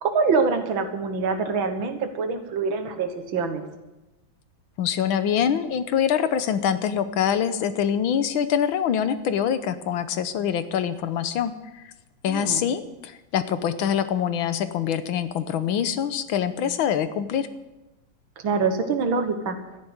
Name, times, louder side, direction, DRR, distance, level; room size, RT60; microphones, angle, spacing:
voice 1, 0.0-3.6 12.3-12.6 18.4-19.6, right 4 dB, 75° right, 7 dB, 2.2 m, -25 dB
voice 2, 4.8-11.8 12.2-17.5, left 8 dB, 85° left, 12 dB, 1.7 m, -25 dB
13.0 x 10.5 x 8.0 m, 1.0 s
omnidirectional pair, 2.2 m